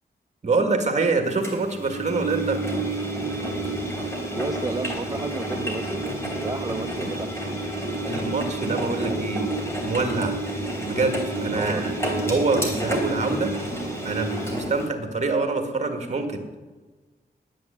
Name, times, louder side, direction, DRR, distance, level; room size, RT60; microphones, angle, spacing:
voice 1, 0.4-2.6 8.1-9.5 9.8-10.3 10.8-11.9 12.2-13.6 14.0-16.4, right 3 dB, 45° right, 6 dB, 1.7 m, -25 dB
Engine, 1.4-14.9, right 1 dB, 15° left, 3.2 m, -29 dB
voice 2, 4.3-6.1 6.4-7.7 11.5-11.8, right 3 dB, 25° right, 7 dB, 0.5 m, -32 dB
9.4 x 9.0 x 10.0 m, 1.3 s
wide cardioid pair, 130°, 17 cm